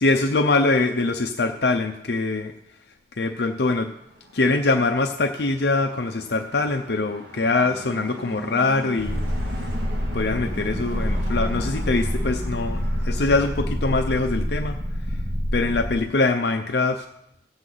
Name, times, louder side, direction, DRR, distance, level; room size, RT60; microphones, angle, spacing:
voice 1, 0.0-2.5 3.2-3.9 4.3-9.2 10.1-14.8 15.5-17.0, left 3 dB, 65° left, 4 dB, 0.7 m, -23 dB
sound 1, 3.9-13.5, equal, 70° right, 1.9 m, -39 dB
Purr, 9.0-16.0, equal, 55° right, 2.2 m, -27 dB
16.5 x 7.9 x 3.9 m, 0.80 s
head